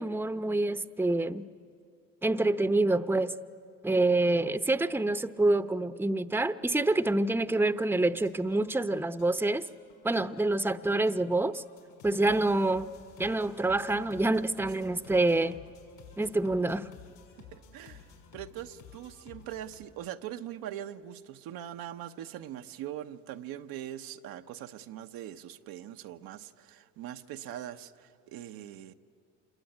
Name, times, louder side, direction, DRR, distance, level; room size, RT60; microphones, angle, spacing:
voice 1, 0.0-1.5 2.2-3.3 3.8-9.6 10.0-11.6 12.0-12.9 13.2-15.6 16.2-16.9, right 2 dB, 5° right, 0.9 m, -27 dB
sound 1, 7.9-19.8, left 6 dB, 70° left, 7.5 m, -54 dB
voice 2, 17.5-18.1 18.3-28.9, right 11 dB, 75° right, 1.0 m, -42 dB
27.5 x 22.0 x 9.4 m
supercardioid pair, 65°, 36 cm